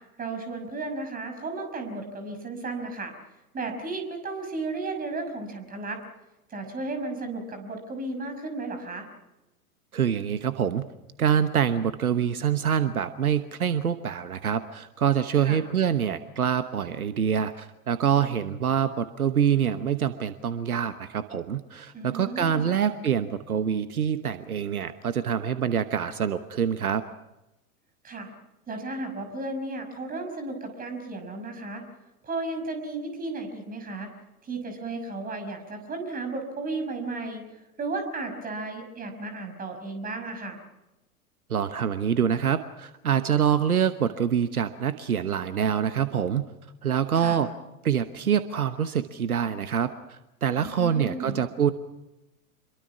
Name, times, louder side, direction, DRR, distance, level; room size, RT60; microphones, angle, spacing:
voice 1, 0.2-3.1 3.5-6.0 6.5-9.1 15.4-15.6 21.9-22.7 28.0-28.3 28.7-31.8 32.2-34.1 34.4-37.4 37.8-40.6 47.1-47.4 50.6-51.4, right 3 dB, 20° right, 6 dB, 5.8 m, -34 dB
voice 2, 9.9-10.9 11.2-27.0 41.5-46.5 46.8-47.5 47.8-51.7, right 8 dB, 70° right, 12 dB, 1.2 m, -25 dB
26.5 x 23.0 x 6.0 m, 0.96 s
figure-of-eight pair, 95°, 44 cm